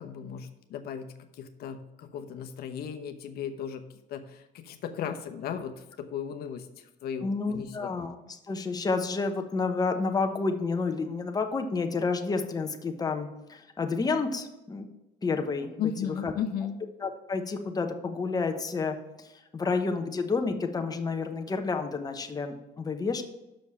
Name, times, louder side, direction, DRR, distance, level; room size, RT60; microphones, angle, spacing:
voice 1, 0.0-7.9 15.8-16.8, left 8 dB, 70° left, 6 dB, 0.9 m, -36 dB
voice 2, 7.2-14.9 15.2-15.7 16.2-16.3 17.0-23.2, left 4 dB, 20° left, 5 dB, 0.9 m, -30 dB
6.4 x 5.3 x 6.9 m, 0.95 s
cardioid pair, 110°, 17 cm